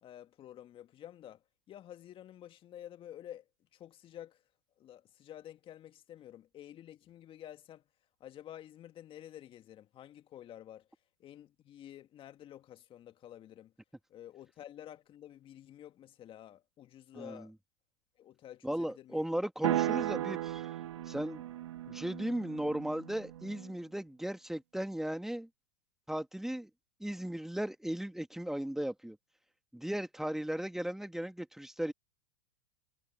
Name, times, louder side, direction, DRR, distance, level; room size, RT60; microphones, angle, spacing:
voice 1, 0.0-4.4 4.8-7.8 8.2-10.9 11.2-13.7 14.1-17.5 18.2-19.3, left 11 dB, 35° left, 2.0 m, -50 dB
voice 2, 17.1-17.5 18.6-20.7 21.1-21.4 21.9-25.5 26.1-26.7 27.0-29.2 29.7-31.9, right 1 dB, ahead, 2.1 m, -36 dB
sound 1, 19.6-23.7, right 13 dB, 75° right, 2.1 m, -36 dB
hypercardioid pair, 100°, 16 cm